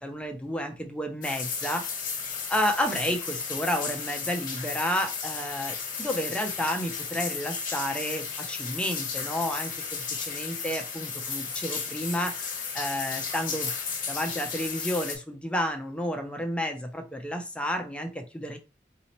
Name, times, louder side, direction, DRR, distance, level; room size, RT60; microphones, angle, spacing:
voice 1, 0.0-1.9 2.5-13.7 14.1-18.6, equal, 5° left, 5 dB, 0.4 m, -31 dB
sound 1, 1.2-15.2, left 6 dB, 50° left, 1.1 m, -34 dB
4.0 x 2.7 x 2.9 m, 0.29 s
head